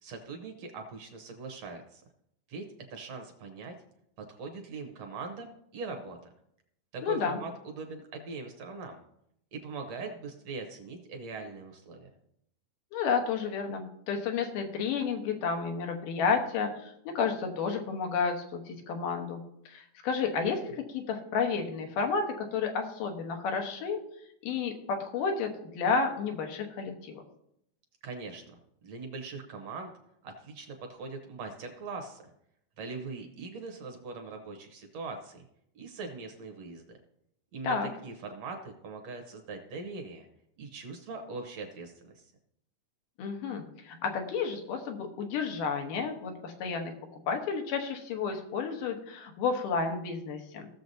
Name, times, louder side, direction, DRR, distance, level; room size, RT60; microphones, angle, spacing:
voice 1, 0.0-2.0 2.5-2.6 2.9-3.7 4.3-6.2 6.9-9.0 9.5-12.1 28.0-28.6 28.8-29.9 30.2-32.2 32.8-35.4 35.8-37.0 37.5-37.8 38.0-40.3 40.6-42.2, right 3 dB, 65° right, 4 dB, 1.9 m, -41 dB
voice 2, 7.0-7.4 12.9-24.0 24.4-27.2 37.6-37.9 43.2-50.7, left 5 dB, 85° left, 3 dB, 2.7 m, -31 dB
17.0 x 6.8 x 2.7 m, 0.76 s
omnidirectional pair, 3.7 m